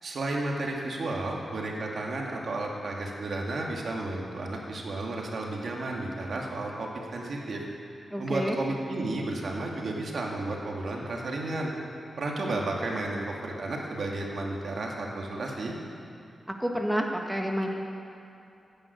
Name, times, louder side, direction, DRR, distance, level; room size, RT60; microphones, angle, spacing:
voice 1, 0.0-7.6 8.2-11.7 12.2-15.7, right 2 dB, 65° right, -1 dB, 2.5 m, -32 dB
voice 2, 8.1-8.6 16.5-17.7, equal, 5° right, 1 dB, 1.6 m, -29 dB
15.0 x 10.5 x 8.1 m, 2.8 s
cardioid pair, 75°, 0 cm